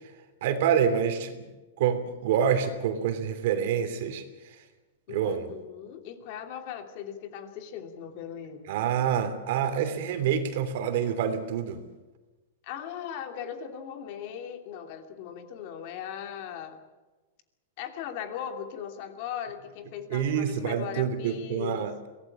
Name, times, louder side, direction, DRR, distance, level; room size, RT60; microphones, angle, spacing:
voice 1, 0.4-1.4 1.8-4.6 5.1-5.5 8.7-11.8 20.1-21.9, right 8 dB, 55° right, 9 dB, 3.0 m, -27 dB
voice 2, 5.1-8.7 12.6-16.8 17.8-21.9, left 9 dB, 45° left, 6 dB, 2.7 m, -38 dB
23.5 x 18.0 x 8.7 m, 1.2 s
supercardioid pair, 160°, 0 cm